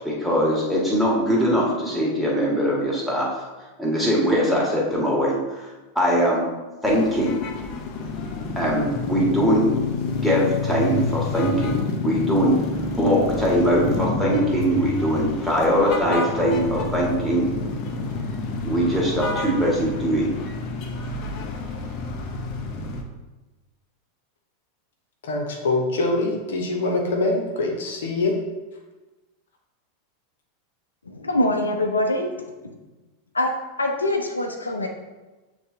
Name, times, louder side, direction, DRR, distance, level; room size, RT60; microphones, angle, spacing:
voice 1, 0.0-3.3 3.8-5.7 6.0-6.4 6.8-7.3 8.6-9.7 10.1-12.5 13.0-17.5 18.6-20.3, equal, ahead, -4 dB, 1.9 m, -21 dB
sound 1, 6.8-23.0, left 3 dB, 45° left, 0.8 m, -29 dB
voice 2, 25.2-28.3, left 2 dB, 65° left, 1 dB, 1.1 m, -24 dB
voice 3, 31.1-32.7 33.3-33.5 33.8-34.9, left 1 dB, 85° left, 3 dB, 0.6 m, -24 dB
8.2 x 3.5 x 3.3 m, 1.2 s
figure-of-eight pair, 90°, 0 cm